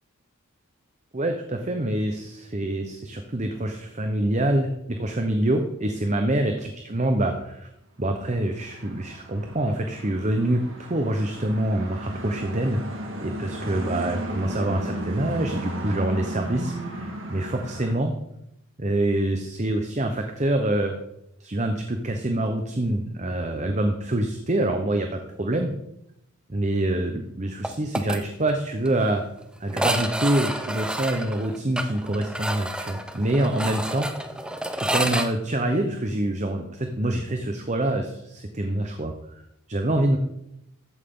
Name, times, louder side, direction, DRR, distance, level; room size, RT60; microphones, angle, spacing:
voice 1, 1.1-7.7 8.0-12.8 13.2-18.1 18.8-20.9 21.4-25.7 26.5-29.3 29.6-34.1 34.7-39.4 39.7-40.2, right 1 dB, 35° right, 5 dB, 0.9 m, -26 dB
sound 1, 8.3-17.9, right 1 dB, 60° right, 1.8 m, -34 dB
sound 2, 27.6-28.2 28.5-28.6 28.9-29.0 29.7-35.3, right 1 dB, 5° right, 0.6 m, -29 dB
14.0 x 9.2 x 3.8 m, 0.81 s
head